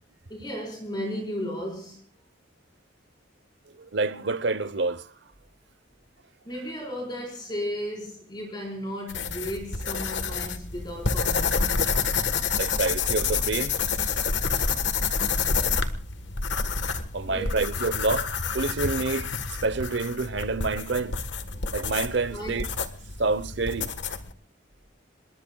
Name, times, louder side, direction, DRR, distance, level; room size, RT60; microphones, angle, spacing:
voice 1, 0.3-2.0 6.4-12.0 17.2-17.5 22.3-22.6, equal, 25° left, 4.8 m, -35 dB
voice 2, 3.8-5.1 12.6-13.8 14.6-14.8 15.2-15.3 17.1-19.3 19.6-21.2 21.7-22.7 23.2-24.0, right 3 dB, 65° right, 0.9 m, -28 dB
sound 1, 9.1-24.3, left 5 dB, 70° left, 1.5 m, -28 dB
27.5 x 21.5 x 2.4 m
head